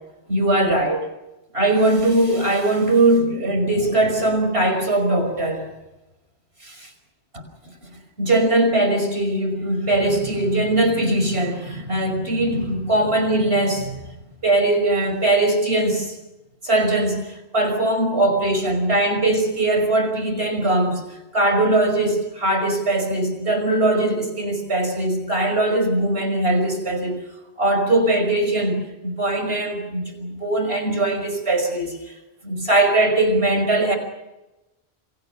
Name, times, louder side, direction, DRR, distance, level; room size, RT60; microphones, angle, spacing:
voice 1, 0.3-1.0 1.5-5.7 6.6-6.8 8.2-14.0 14.4-16.2 16.6-21.0 21.3-27.2 27.6-32.0 32.4-34.0, right 2 dB, 75° right, 5.8 m, -20 dB
29.0 x 26.0 x 6.0 m
omnidirectional pair, 1.1 m